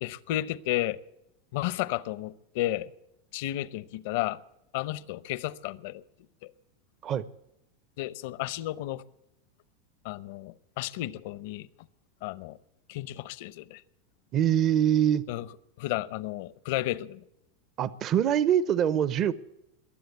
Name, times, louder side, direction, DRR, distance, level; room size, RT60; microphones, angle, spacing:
voice 1, 0.0-1.0 1.5-2.9 3.3-4.4 4.7-6.0 6.4-6.5 8.0-9.0 10.0-11.7 12.2-12.6 12.9-13.8 15.3-15.5 15.8-17.2, left 15 dB, 65° left, 0.7 m, -32 dB
voice 2, 14.3-15.2 17.8-19.3, right 10 dB, 40° right, 0.7 m, -24 dB
22.0 x 7.9 x 8.0 m
supercardioid pair, 120°, 0 cm